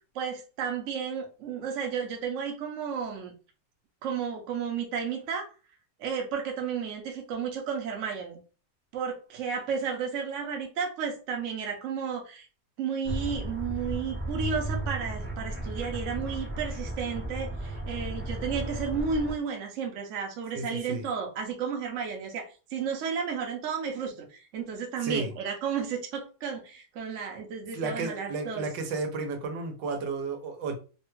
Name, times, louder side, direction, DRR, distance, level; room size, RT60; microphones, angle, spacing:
voice 1, 0.1-3.3 4.0-5.5 6.0-8.4 8.9-12.5 12.8-28.7, right 6 dB, 60° right, 0.8 m, -33 dB
sound 1, 13.0-19.3, right 2 dB, 10° right, 0.5 m, -34 dB
voice 2, 20.5-21.0 25.0-25.3 27.7-30.8, right 3 dB, 90° right, 1.4 m, -33 dB
3.2 x 2.2 x 3.0 m
omnidirectional pair, 1.9 m